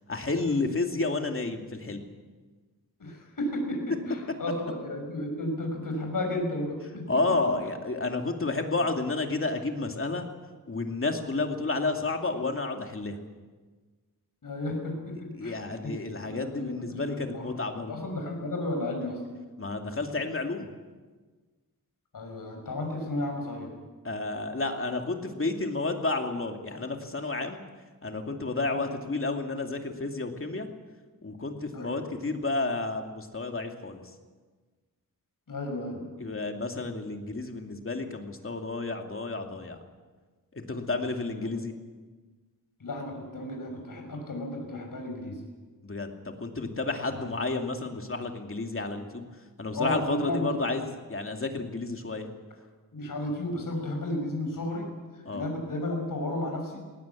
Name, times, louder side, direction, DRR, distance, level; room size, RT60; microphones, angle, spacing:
voice 1, 0.1-2.1 7.1-10.3 10.7-13.2 15.4-17.9 19.6-20.7 24.0-27.6 28.0-30.7 31.2-34.0 36.2-39.8 40.5-41.7 45.8-49.2 49.6-52.3 55.2-55.5, left 3 dB, 40° left, 4 dB, 2.5 m, -31 dB
voice 2, 3.0-7.1 14.4-15.9 16.2-17.5 17.9-19.2 22.1-23.7 28.7-28.9 31.7-32.0 35.5-36.2 40.9-41.0 41.4-41.5 42.8-45.4 47.2-47.3 49.7-50.5 52.9-54.8 55.3-56.8, left 1 dB, 70° left, 2 dB, 6.0 m, -33 dB
19.0 x 19.0 x 8.4 m, 1.4 s
wide cardioid pair, 100°, 35 cm